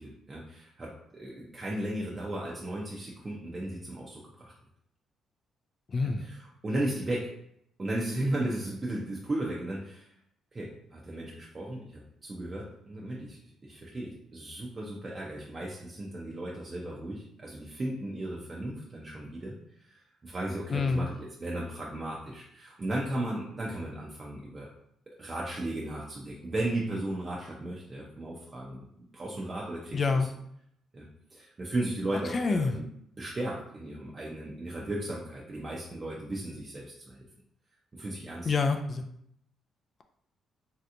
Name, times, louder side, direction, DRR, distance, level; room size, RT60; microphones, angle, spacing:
voice 1, 0.0-4.5 6.0-7.3 7.8-10.1 10.5-24.7 25.2-30.3 30.9-31.0 31.3-32.9 33.2-37.3 37.9-38.5, right 1 dB, 30° right, -4 dB, 0.6 m, -35 dB
voice 2, 5.9-6.2 20.7-21.1 29.9-30.3 32.3-32.7 38.5-39.0, left 4 dB, 40° left, 6 dB, 0.3 m, -27 dB
3.2 x 2.8 x 2.5 m, 0.72 s
cardioid pair, 90°, 0 cm